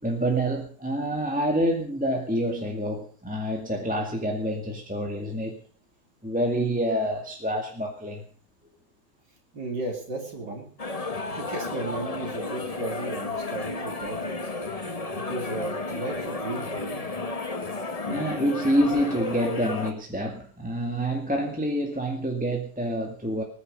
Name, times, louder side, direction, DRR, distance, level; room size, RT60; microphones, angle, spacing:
voice 1, 0.0-5.6 6.2-8.2 18.1-23.4, right 1 dB, 5° right, 1 dB, 2.0 m, -27 dB
voice 2, 9.5-10.7 11.3-14.4 14.7-17.0 18.3-18.4, right 2 dB, 70° right, 1 dB, 3.7 m, -35 dB
sound 1, 10.8-19.9, left 3 dB, 25° left, 1.2 m, -32 dB
20.0 x 10.0 x 5.3 m, 0.43 s
omnidirectional pair, 1.9 m